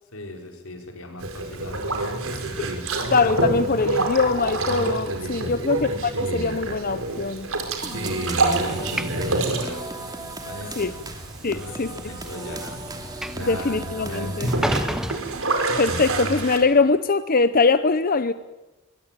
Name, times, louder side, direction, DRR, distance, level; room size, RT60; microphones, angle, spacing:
voice 1, 0.1-2.7 5.4-5.7 8.0-9.8 10.3-11.0 11.4-12.9 13.3-15.1, left 1 dB, 85° left, 5.0 m, -40 dB
Boat Water vehicle, 1.2-16.6, right 2 dB, 80° right, 4.7 m, -28 dB
voice 2, 3.1-7.5 10.8-10.9 11.4-11.9 13.5-14.5 15.8-18.3, left 4 dB, 45° left, 0.8 m, -22 dB
Train / Sliding door, 7.0-16.2, equal, 5° right, 0.9 m, -35 dB
sound 1, 7.8-15.2, right 2 dB, 20° right, 2.8 m, -37 dB
24.5 x 22.5 x 9.0 m
head